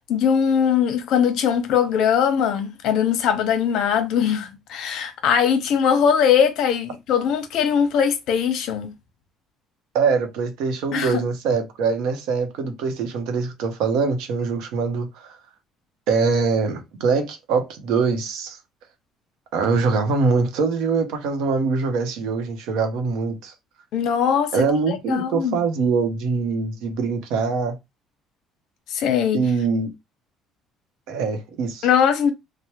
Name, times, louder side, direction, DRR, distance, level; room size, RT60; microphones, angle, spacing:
voice 1, 0.1-8.9 10.9-11.2 23.9-24.5 24.9-25.6 28.9-29.4 31.8-32.3, left 8 dB, 65° left, 0.7 m, -20 dB
voice 2, 9.9-15.4 16.1-18.6 19.5-23.5 24.5-27.8 29.3-29.9 31.1-31.9, right 4 dB, 80° right, 0.8 m, -23 dB
3.3 x 2.1 x 2.9 m
cardioid pair, 135°, 0 cm